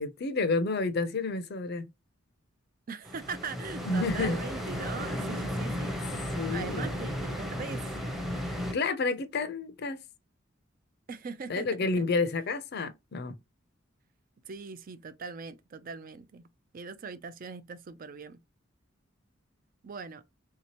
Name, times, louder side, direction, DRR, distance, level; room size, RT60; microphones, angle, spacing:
voice 1, 0.0-1.9 3.8-4.4 6.4-6.9 8.7-10.0 11.5-13.4, left 3 dB, 55° left, 0.5 m, -30 dB
voice 2, 2.9-7.9 11.1-11.7 12.0-12.1 14.4-16.5 16.7-18.4 19.8-20.2, right 5 dB, 45° right, 0.4 m, -41 dB
sound 1, 3.1-8.7, equal, ahead, 0.7 m, -34 dB
3.4 x 2.8 x 2.9 m
head